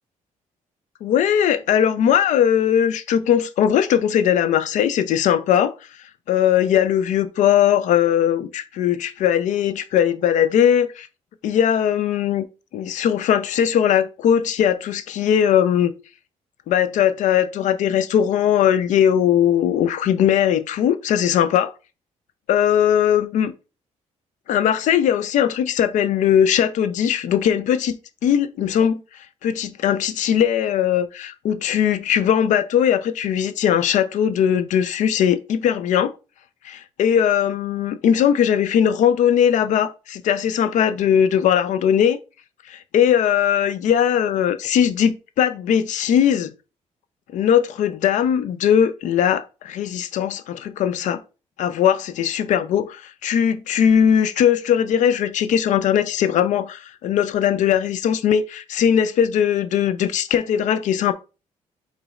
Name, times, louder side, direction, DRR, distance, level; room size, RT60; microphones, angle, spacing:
voice 1, 1.0-5.7 6.3-11.1 11.4-12.5 12.7-15.9 16.7-21.7 22.5-23.5 24.5-29.0 29.4-36.1 36.6-42.2 42.7-46.5 47.3-51.2 51.6-61.1, left 9 dB, 70° left, 0.4 m, -19 dB
5.0 x 3.9 x 2.4 m
cardioid pair, 100°, 13 cm